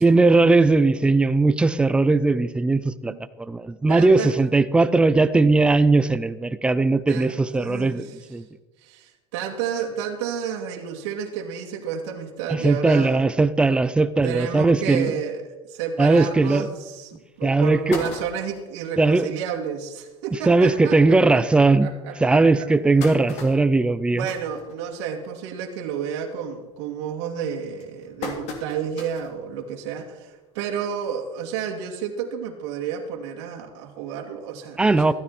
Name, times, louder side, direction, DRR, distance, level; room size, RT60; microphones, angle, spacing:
voice 1, 0.0-8.5 12.5-15.1 16.0-16.7 17.4-18.0 19.0-19.3 20.5-21.9 22.2-24.3 34.8-35.1, right 3 dB, 5° right, 14 dB, 0.4 m, -19 dB
voice 2, 3.9-4.3 7.1-8.1 8.8-13.2 14.2-22.7 24.1-35.1, right 7 dB, 75° right, 1 dB, 2.3 m, -31 dB
sound 1, 16.8-16.9 17.4-17.5 17.7-18.7 19.3-19.4 19.7-19.8 20.1-20.3 21.0-21.1 21.6-21.7 22.4-25.3 25.7-26.0 26.3-26.7 27.4-29.4 29.8-29.9 31.1-31.2, left 3 dB, 50° left, 2.9 m, -36 dB
15.0 x 13.5 x 4.3 m, 1.1 s
cardioid pair, 165°, 15 cm